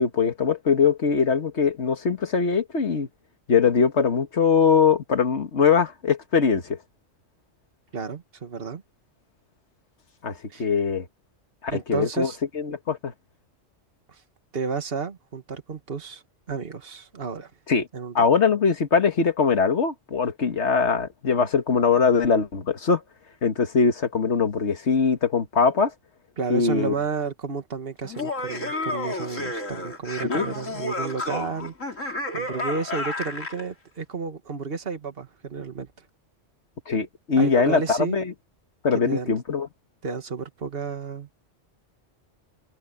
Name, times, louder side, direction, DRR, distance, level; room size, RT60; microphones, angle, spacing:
voice 1, 0.0-3.1 3.5-6.8 10.2-11.1 11.6-13.1 17.7-17.9 18.2-23.0 23.4-25.9 26.5-26.9 30.2-30.5 36.9-38.3 38.8-39.7, left 5 dB, 60° left, 1.8 m, -22 dB
voice 2, 7.9-8.8 10.5-10.7 11.7-12.4 14.1-14.2 14.5-16.2 16.5-17.5 17.9-18.3 26.4-32.0 32.3-35.9 37.4-38.2 38.9-39.4 40.0-41.5, right 5 dB, 50° right, 1.9 m, -32 dB
Laughter, 28.0-33.6, left 2 dB, 85° left, 3.9 m, -31 dB
omnidirectional pair, 1.3 m